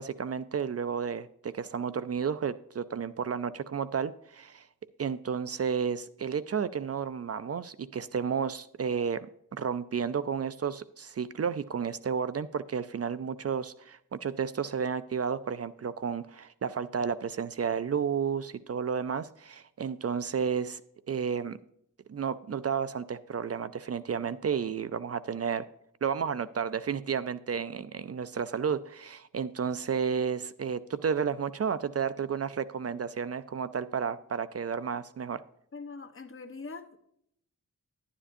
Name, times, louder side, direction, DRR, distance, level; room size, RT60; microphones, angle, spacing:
voice 1, 0.0-4.7 5.0-9.3 9.5-20.8 21.1-21.6 22.1-25.6 26.0-35.4, right 6 dB, 50° right, 15 dB, 0.4 m, -32 dB
voice 2, 35.7-37.0, left 4 dB, 40° left, 9 dB, 0.9 m, -42 dB
11.0 x 9.8 x 2.6 m, 0.72 s
wide cardioid pair, 80°, 32 cm